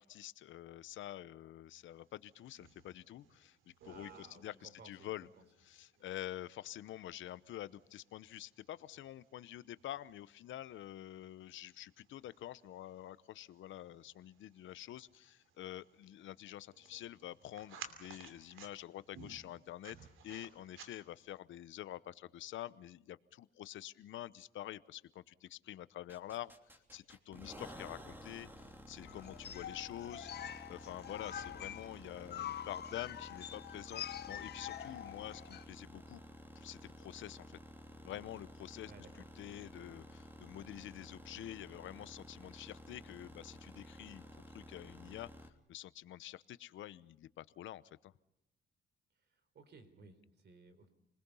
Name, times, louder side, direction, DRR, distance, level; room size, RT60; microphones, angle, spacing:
voice 1, 0.0-3.6 3.8-5.3 5.6-20.0 20.2-30.3 30.7-36.2 36.6-37.6 38.0-48.1, left 13 dB, 75° left, 17 dB, 0.8 m, -48 dB
sound 1, 2.0-21.4, right 6 dB, 85° right, 2.8 m, -59 dB
voice 2, 3.8-5.1 5.9-6.1 32.2-32.6 38.9-39.3 49.5-50.9, right 4 dB, 55° right, 10 dB, 3.9 m, -58 dB
sound 2, 26.1-45.5, equal, 10° right, 3.1 m, -53 dB
sound 3, 29.0-35.6, left 10 dB, 55° left, 1.2 m, -46 dB
29.5 x 20.5 x 5.6 m, 0.85 s
cardioid pair, 90°, 20 cm